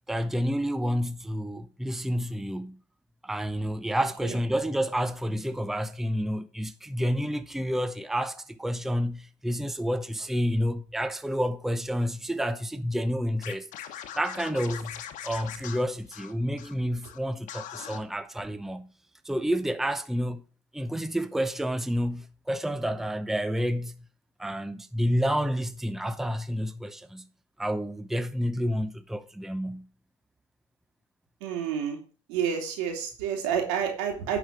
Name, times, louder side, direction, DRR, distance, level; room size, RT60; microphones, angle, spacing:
voice 1, 0.1-2.8 3.2-13.7 14.2-18.9 19.2-20.4 20.7-24.0 24.4-27.3 27.6-29.9, equal, ahead, 0.7 m, -29 dB
Scratching (performance technique), 13.4-16.7 17.0-17.2 17.5-18.0, left 10 dB, 60° left, 1.3 m, -41 dB
voice 2, 31.4-32.0 32.3-34.4, right 8 dB, 85° right, 3.2 m, -29 dB
10.5 x 5.1 x 6.2 m
supercardioid pair, 100°, 15 cm